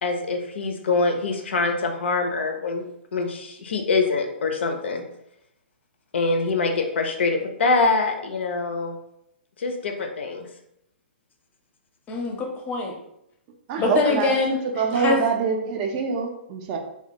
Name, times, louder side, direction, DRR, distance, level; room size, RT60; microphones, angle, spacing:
voice 1, 0.0-5.0 6.1-9.0 9.6-10.5, left 3 dB, 75° left, 5 dB, 0.4 m, -24 dB
voice 2, 12.1-12.9 13.8-15.2, left 3 dB, 25° left, 2 dB, 0.5 m, -24 dB
voice 3, 13.7-14.3 14.8-16.8, right 5 dB, 40° right, 3 dB, 0.4 m, -24 dB
2.2 x 2.2 x 2.7 m, 0.79 s
hypercardioid pair, 120°, 6 cm